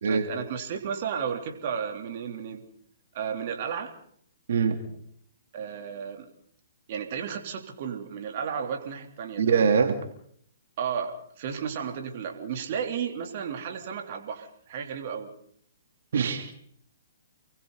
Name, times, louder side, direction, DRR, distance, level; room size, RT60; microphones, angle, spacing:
voice 1, 0.1-2.6 3.1-4.0 5.5-6.3 6.9-9.7 10.8-15.3, right 7 dB, 50° right, 3 dB, 3.4 m, -33 dB
voice 2, 4.5-4.8 9.4-10.0 16.1-16.5, right 6 dB, 65° right, 5 dB, 3.3 m, -23 dB
29.5 x 22.5 x 4.1 m, 0.63 s
hypercardioid pair, 140°, 0 cm